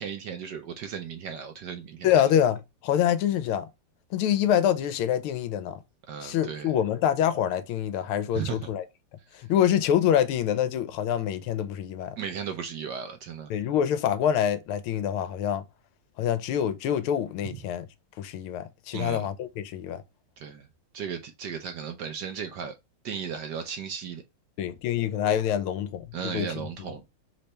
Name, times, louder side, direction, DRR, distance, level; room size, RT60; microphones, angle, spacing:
voice 1, 0.0-2.1 6.1-6.7 8.3-8.7 12.2-13.5 17.4-17.5 18.9-19.3 20.4-20.7 20.9-22.7 23.0-24.2 26.1-27.2, right 7 dB, 70° right, 1.0 m, -35 dB
voice 2, 2.0-3.7 4.1-5.8 6.2-8.8 9.4-12.2 13.5-15.6 16.2-17.8 18.2-20.0 24.6-26.9, left 10 dB, 85° left, 1.5 m, -26 dB
3.9 x 3.3 x 4.1 m
omnidirectional pair, 2.3 m